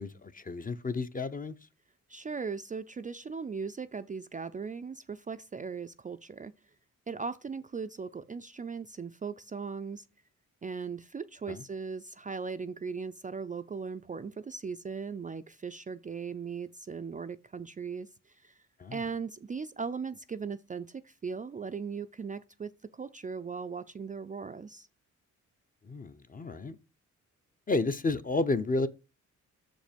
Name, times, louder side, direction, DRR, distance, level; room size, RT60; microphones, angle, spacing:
voice 1, 0.0-1.5 11.5-11.6 18.8-19.0 25.9-26.8 27.7-28.9, left 3 dB, 25° left, 0.6 m, -31 dB
voice 2, 2.1-6.5 7.1-10.0 10.6-18.6 18.9-24.9, right 5 dB, 25° right, 0.4 m, -38 dB
6.6 x 5.2 x 5.1 m
cardioid pair, 80°, 31 cm